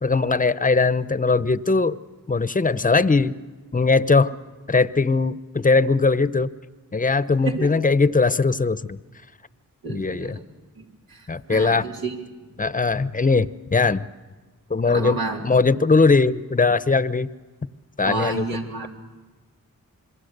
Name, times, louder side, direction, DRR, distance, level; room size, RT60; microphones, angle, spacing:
voice 1, 0.0-2.0 2.3-3.4 3.7-4.3 4.7-6.5 6.9-9.0 9.9-10.4 11.3-11.9 12.6-14.0 14.7-15.2 15.4-17.3 18.0-18.4, left 4 dB, 25° left, 15 dB, 0.9 m, -20 dB
voice 2, 9.8-10.4 10.8-12.2 12.6-12.7 14.9-15.5 18.0-18.9, right 3 dB, 80° right, -1 dB, 3.6 m, -30 dB
26.5 x 22.0 x 6.7 m, 1.4 s
cardioid pair, 45°, 34 cm